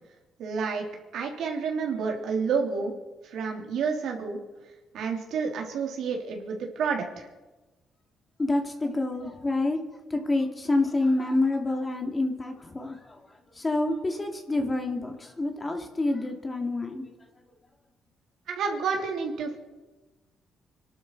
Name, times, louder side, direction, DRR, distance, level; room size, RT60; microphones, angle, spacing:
voice 1, 0.4-0.9 1.1-2.9 3.2-4.4 4.9-7.3 18.5-19.6, right 5 dB, 75° right, 1 dB, 3.3 m, -29 dB
voice 2, 8.4-9.8 10.1-13.2 13.5-17.1, left 2 dB, 25° left, 4 dB, 2.6 m, -27 dB
25.5 x 12.0 x 4.7 m, 1.2 s
cardioid pair, 90°, 0 cm